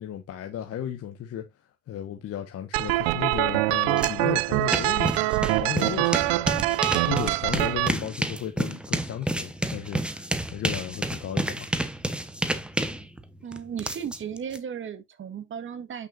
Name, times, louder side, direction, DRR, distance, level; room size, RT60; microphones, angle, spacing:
voice 1, 0.0-1.5 1.9-5.3 5.6-6.7 7.1-11.7, left 10 dB, 35° left, 1.4 m, -34 dB
sound 1, 2.7-7.9, right 20 dB, 55° right, 0.6 m, -24 dB
sound 2, 4.0-4.1 4.4-14.6, right 1 dB, ahead, 0.8 m, -30 dB
voice 2, 13.4-16.1, right 8 dB, 25° right, 1.7 m, -35 dB
8.9 x 6.2 x 2.6 m
hypercardioid pair, 95°, 44 cm